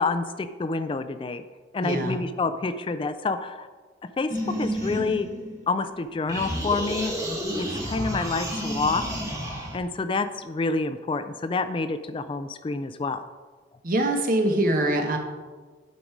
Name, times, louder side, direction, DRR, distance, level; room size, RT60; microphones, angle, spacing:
voice 1, 0.0-1.4 1.7-3.7 4.0-5.3 5.7-7.1 7.6-9.1 9.7-13.3, left 3 dB, 30° left, 11 dB, 0.3 m, -28 dB
voice 2, 1.8-2.2 13.8-15.2, right 1 dB, 50° right, 4 dB, 1.1 m, -23 dB
sound 1, 4.3-5.9 6.3-9.8, equal, 20° right, 1.9 m, -31 dB
11.0 x 5.1 x 4.6 m, 1.4 s
head